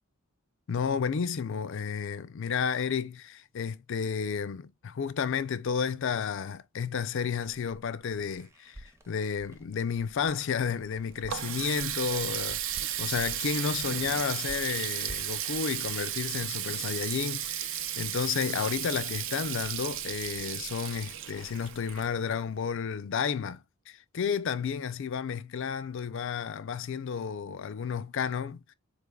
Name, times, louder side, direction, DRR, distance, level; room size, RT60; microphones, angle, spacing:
voice 1, 0.7-28.6, left 6 dB, 60° left, 0.4 m, -32 dB
sound 1, 7.4-17.2, right 1 dB, 15° right, 0.6 m, -53 dB
Water tap faucet, 10.8-22.5, right 11 dB, 60° right, 0.5 m, -34 dB
4.5 x 3.3 x 2.3 m
head